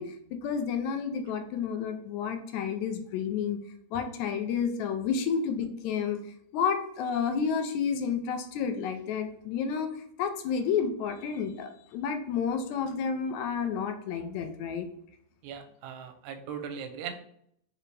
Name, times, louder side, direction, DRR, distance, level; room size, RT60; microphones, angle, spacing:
voice 1, 0.0-3.6 3.9-6.2 6.5-14.9, left 6 dB, 80° left, 6 dB, 1.9 m, -30 dB
voice 2, 15.4-17.1, right 7 dB, 90° right, 7 dB, 2.0 m, -39 dB
4.9 x 3.3 x 3.2 m, 0.68 s
omnidirectional pair, 3.4 m